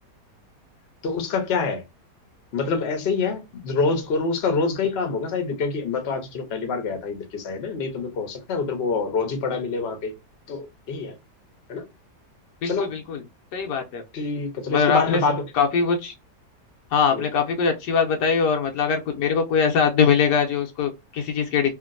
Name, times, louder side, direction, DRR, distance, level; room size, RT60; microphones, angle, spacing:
voice 1, 1.0-1.8 2.5-10.1 10.5-11.1 11.7-11.9 12.6-13.0 14.1-15.4 17.1-17.3, left 4 dB, 50° left, 0.9 m, -26 dB
voice 2, 12.6-13.2 13.5-14.0 14.7-15.2 15.5-16.1 16.9-21.7, left 6 dB, 80° left, 1.3 m, -22 dB
2.9 x 2.6 x 2.5 m
omnidirectional pair, 1.8 m